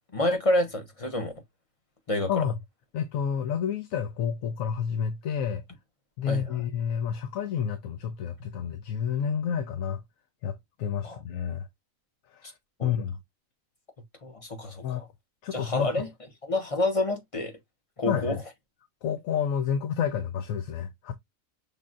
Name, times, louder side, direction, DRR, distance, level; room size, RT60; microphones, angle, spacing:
voice 1, 0.1-1.3 2.1-2.4 6.3-6.4 11.0-11.2 12.8-12.9 14.2-15.1 15.5-16.1 16.5-17.6 18.0-18.4, left 1 dB, 25° left, 0.9 m, -28 dB
voice 2, 2.9-5.6 6.2-10.0 10.4-11.7 12.3-12.5 12.8-13.2 14.8-15.1 15.4-16.0 18.1-18.4 19.0-21.1, left 8 dB, 75° left, 1.0 m, -30 dB
5.8 x 3.5 x 2.4 m
omnidirectional pair, 1.5 m